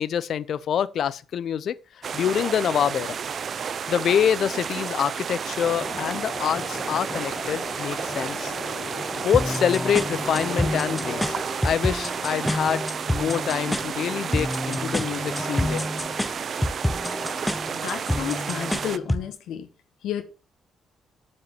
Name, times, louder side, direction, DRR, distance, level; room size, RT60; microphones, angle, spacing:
voice 1, 0.0-1.7 2.1-3.2 3.9-8.5 9.2-11.4 11.6-15.8, left 9 dB, 65° left, 0.6 m, -26 dB
sound 1, 2.0-19.0, right 7 dB, 50° right, 0.6 m, -32 dB
sound 2, 5.6-11.4, left 3 dB, 30° left, 1.2 m, -37 dB
sound 3, 9.3-19.3, left 1 dB, 5° left, 0.5 m, -29 dB
voice 2, 17.7-19.7 20.0-20.2, left 10 dB, 80° left, 1.3 m, -31 dB
9.5 x 5.5 x 5.9 m
cardioid pair, 90°, 0 cm